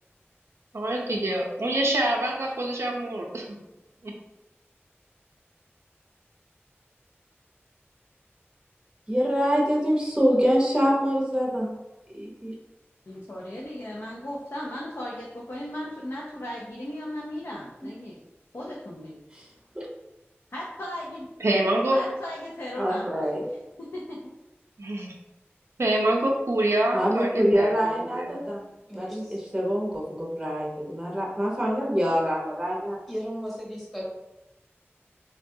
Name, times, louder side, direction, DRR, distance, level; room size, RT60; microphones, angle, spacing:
voice 1, 0.7-3.6 4.0-4.1 21.4-22.0 24.8-25.1 25.8-28.4, right 1 dB, 85° right, -1 dB, 0.4 m, -26 dB
voice 2, 9.1-11.7 12.1-12.5 19.3-19.4 19.7-19.9 22.8-23.4 26.9-28.6 28.9-33.0, equal, 15° right, -3 dB, 0.6 m, -25 dB
voice 3, 13.1-18.2 18.5-19.2 20.5-21.3 21.9-23.2 23.9-24.2, left 1 dB, 70° left, -5 dB, 0.5 m, -36 dB
voice 4, 28.9-29.4 33.1-34.0, equal, 5° left, -4 dB, 1.0 m, -36 dB
3.4 x 2.2 x 2.6 m, 0.98 s
wide cardioid pair, 45°, 5 cm